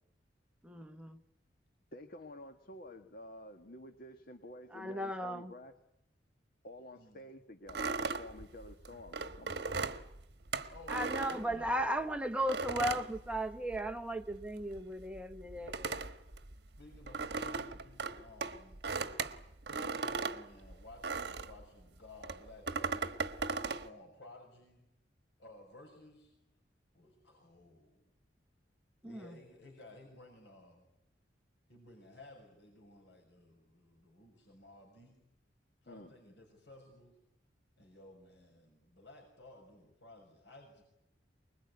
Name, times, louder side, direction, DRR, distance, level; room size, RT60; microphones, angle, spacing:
voice 1, 0.6-1.2 4.7-5.5 10.9-16.0 29.0-29.3, equal, 5° right, 1.3 m, -36 dB
voice 2, 1.9-5.7 6.6-9.9 35.9-36.1, left 1 dB, 55° left, 1.6 m, -51 dB
sound 1, 7.7-12.0 12.5-14.0 14.2-21.6 22.2-23.9, right 4 dB, 65° right, 1.4 m, -38 dB
voice 3, 10.7-11.9 16.8-18.8 19.7-23.1 23.6-24.9 25.4-26.3 26.9-28.1 29.0-30.9 31.7-35.2 35.8-37.2 37.8-40.8, left 2 dB, 70° left, 6.5 m, -56 dB
24.5 x 21.5 x 9.7 m
head